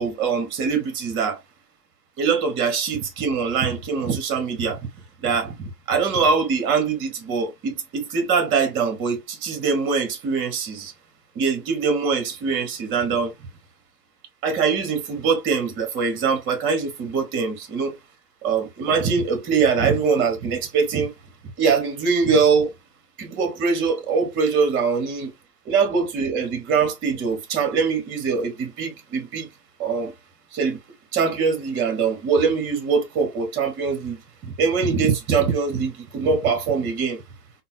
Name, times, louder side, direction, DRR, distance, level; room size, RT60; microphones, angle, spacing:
voice 1, 0.0-1.4 2.2-4.8 5.2-10.9 11.3-13.3 14.4-18.0 18.4-21.1 21.6-22.7 23.2-25.3 25.7-29.5 29.8-30.1 30.5-30.8 31.1-34.2 34.6-37.2, right 5 dB, 25° right, 1.0 m, -23 dB
3.8 x 2.1 x 2.5 m
hypercardioid pair, 120°, 49 cm